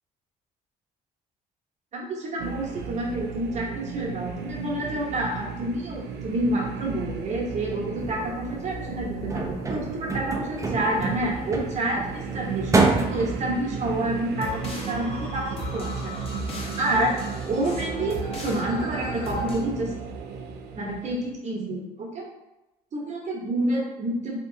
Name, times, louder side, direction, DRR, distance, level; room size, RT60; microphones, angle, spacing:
voice 1, 1.9-16.5 16.8-17.1 17.5-19.9 20.7-22.3 22.9-24.4, right 1 dB, 45° right, -2 dB, 0.9 m, -28 dB
sound 1, 2.4-21.3, right 6 dB, 85° right, 0.4 m, -35 dB
sound 2, 8.0-13.4, right 3 dB, 20° right, 0.5 m, -28 dB
sound 3, 14.4-19.6, left 1 dB, 35° left, 0.8 m, -37 dB
3.3 x 2.9 x 2.7 m, 0.98 s
cardioid pair, 110°, 17 cm